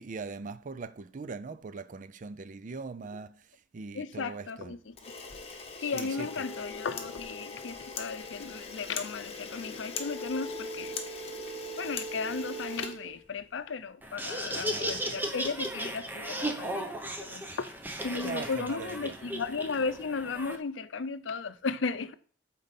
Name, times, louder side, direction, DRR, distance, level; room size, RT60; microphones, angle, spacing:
voice 1, 0.0-3.4 3.7-4.7 5.8-6.3 14.5-15.0 18.2-19.1, right 4 dB, 45° right, 0.4 m, -41 dB
voice 2, 3.9-5.1 5.8-11.2 11.8-17.8 18.0-22.1, left 4 dB, 90° left, 0.5 m, -35 dB
Camera, 4.9-13.7, left 5 dB, 35° left, 1.1 m, -42 dB
sound 1, 6.1-8.7 9.9-13.2, right 2 dB, 10° left, 2.8 m, -42 dB
Laughter, 14.0-20.6, right 1 dB, 10° right, 0.7 m, -36 dB
8.6 x 4.2 x 4.1 m
head